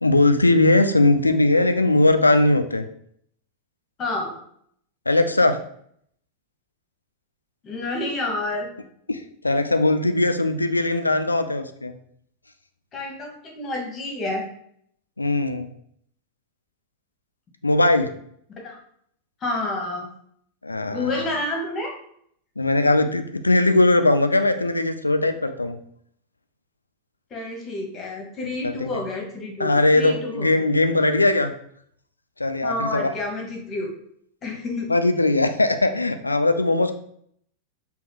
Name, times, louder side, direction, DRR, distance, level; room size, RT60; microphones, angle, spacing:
voice 1, 0.0-2.9 5.1-5.6 9.1-9.2 9.4-11.9 15.2-15.7 17.6-18.1 20.6-21.4 22.6-25.8 28.6-29.0 29.6-31.5 32.4-33.1 34.9-36.9, left 2 dB, 80° left, 8 dB, 0.3 m, -20 dB
voice 2, 4.0-4.3 7.6-8.7 12.9-14.5 18.6-18.8 19.4-20.1 20.9-21.9 27.3-30.5 32.6-33.9 34.4-34.9, left 2 dB, 25° left, 0 dB, 1.1 m, -29 dB
3.8 x 2.2 x 3.5 m, 0.66 s
figure-of-eight pair, 90°, 0 cm